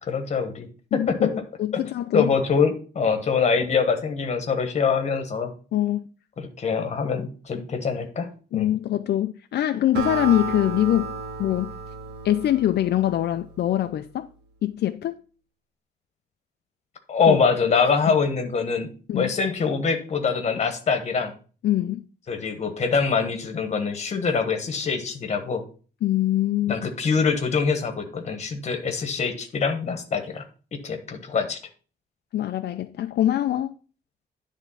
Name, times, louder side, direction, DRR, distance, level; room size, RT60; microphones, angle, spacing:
voice 1, 0.0-1.3 2.1-5.5 6.4-8.3 8.5-8.7 17.1-21.3 22.3-25.6 26.7-30.4 30.7-31.6, left 5 dB, 40° left, 1.2 m, -24 dB
voice 2, 0.9-2.3 5.7-6.0 8.5-11.1 11.4-11.7 12.2-14.3 14.6-15.2 17.3-17.4 19.1-19.3 21.6-22.0 26.0-26.8 32.3-33.7, left 12 dB, 80° left, 0.4 m, -23 dB
Acoustic guitar, 9.9-13.5, right 4 dB, 85° right, 1.7 m, -33 dB
10.0 x 3.5 x 5.6 m
wide cardioid pair, 175°, 17 cm